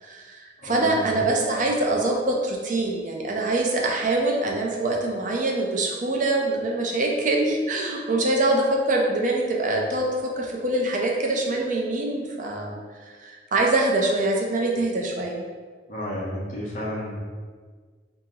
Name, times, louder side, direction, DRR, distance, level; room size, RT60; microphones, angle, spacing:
voice 1, 0.0-12.8 13.0-15.4, right 2 dB, 45° right, 0 dB, 0.6 m, -24 dB
voice 2, 0.6-1.1 15.9-17.2, left 1 dB, 45° left, -4 dB, 1.1 m, -32 dB
3.9 x 2.9 x 3.7 m, 1.5 s
head